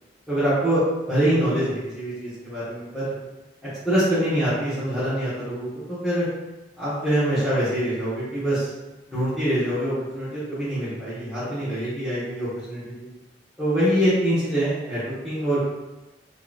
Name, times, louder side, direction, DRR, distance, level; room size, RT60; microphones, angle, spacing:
voice 1, 0.3-3.1 3.8-6.2 6.8-8.7 9.1-13.1 13.6-15.6, right 1 dB, ahead, -15 dB, 1.3 m, -24 dB
4.1 x 3.2 x 2.4 m, 1.1 s
head